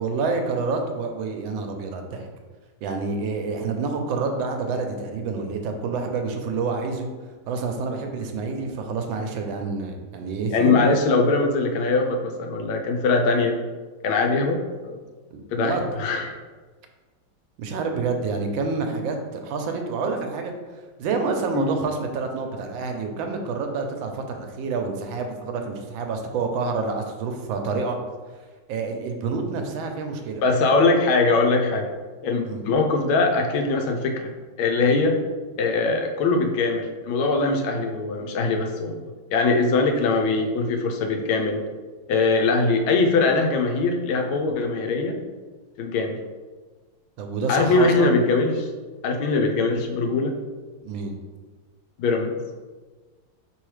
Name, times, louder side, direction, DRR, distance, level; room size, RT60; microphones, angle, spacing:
voice 1, 0.0-2.3 2.8-7.1 7.5-10.9 15.3-15.8 17.6-20.5 21.0-28.0 28.7-30.4 32.4-32.6 47.2-48.2 50.8-51.1, right 4 dB, 80° right, 4 dB, 1.3 m, -28 dB
voice 2, 10.5-13.5 14.0-14.6 14.8-15.0 15.5-16.3 21.5-21.8 30.4-31.9 32.2-34.3 34.6-35.2 35.6-39.0 39.3-41.6 42.1-45.1 45.8-46.1 47.5-48.7 49.0-50.4 52.0-52.3, left 3 dB, 90° left, 3 dB, 1.4 m, -21 dB
4.7 x 3.4 x 3.1 m, 1.4 s
omnidirectional pair, 2.2 m